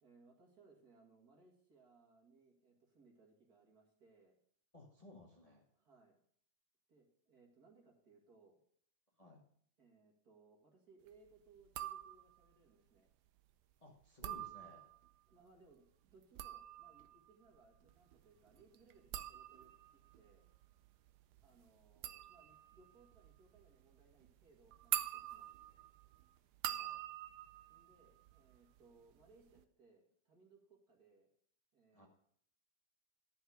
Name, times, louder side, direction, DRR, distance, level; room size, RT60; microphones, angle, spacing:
voice 1, 0.0-4.4 5.8-6.2 6.9-8.6 9.8-13.1 15.3-20.5 21.4-25.5 27.7-31.3 31.7-32.1, right 4 dB, 55° right, 0 dB, 2.5 m, -67 dB
voice 2, 4.7-5.7 9.2-9.4 13.8-14.9 26.7-27.0 31.9-32.1, left 2 dB, 20° left, -1 dB, 1.3 m, -58 dB
sound 1, 11.6-12.5 14.0-15.1 16.1-28.8 29.1-29.6, right 12 dB, 70° right, 1.1 m, -46 dB
10.5 x 6.0 x 6.4 m, 0.63 s
omnidirectional pair, 2.0 m